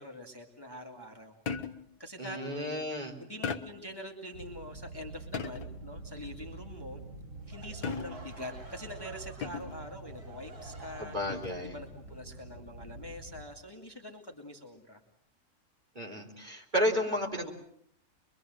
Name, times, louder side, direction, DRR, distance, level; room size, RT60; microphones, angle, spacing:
voice 1, 0.0-1.4 2.0-2.8 3.2-7.0 7.5-11.2 11.6-15.0, left 1 dB, 15° left, 2 dB, 2.1 m, -44 dB
sound 1, 1.5-2.0 3.4-3.9 5.3-5.8 7.8-8.4 9.4-9.9 11.3-11.7, left 5 dB, 70° left, 1.7 m, -37 dB
voice 2, 2.2-3.1 11.0-11.7 16.0-17.5, equal, 30° right, 1 dB, 4.1 m, -32 dB
sound 2, 4.3-13.5, right 2 dB, 60° right, 4.6 m, -47 dB
Laughter / Crowd, 7.4-13.3, right 3 dB, 85° right, 4.9 m, -52 dB
24.5 x 23.0 x 7.8 m, 0.67 s
omnidirectional pair, 1.6 m